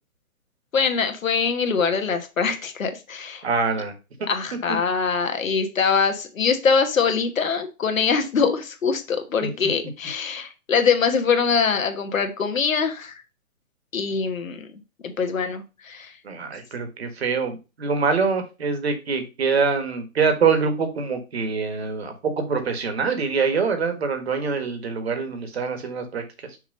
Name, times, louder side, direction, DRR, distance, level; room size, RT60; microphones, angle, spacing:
voice 1, 0.7-3.5 4.3-13.2 13.9-14.7 15.0-16.1, left 5 dB, 65° left, 7 dB, 1.4 m, -23 dB
voice 2, 3.4-3.9 9.4-9.5 16.2-26.2, right 5 dB, 45° right, 7 dB, 1.5 m, -24 dB
6.3 x 3.3 x 5.1 m, 0.29 s
hypercardioid pair, 175°, 43 cm